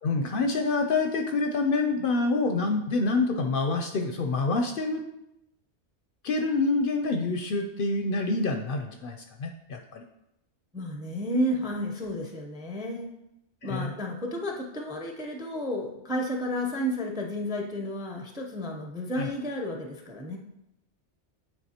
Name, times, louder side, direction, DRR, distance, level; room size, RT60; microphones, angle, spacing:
voice 1, 0.0-5.0 6.2-10.0 13.6-13.9 19.2-19.3, left 3 dB, 60° left, 4 dB, 0.6 m, -27 dB
voice 2, 10.7-13.1 13.6-20.4, equal, 5° right, 2 dB, 0.4 m, -32 dB
9.2 x 3.6 x 2.8 m, 0.84 s
omnidirectional pair, 1.2 m